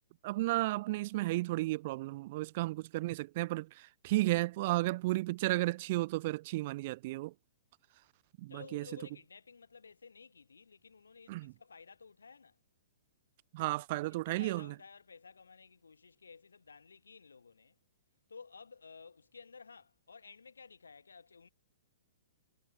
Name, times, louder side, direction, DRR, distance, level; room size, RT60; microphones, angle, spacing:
voice 1, 0.2-3.7 4.0-7.3 8.4-8.8 11.3-11.5 13.5-14.7, right 19 dB, 40° right, 0.4 m, -33 dB
voice 2, 8.5-12.6 13.9-17.8 18.3-21.5, left 5 dB, 70° left, 1.8 m, -54 dB
figure-of-eight pair, 115°, 0 cm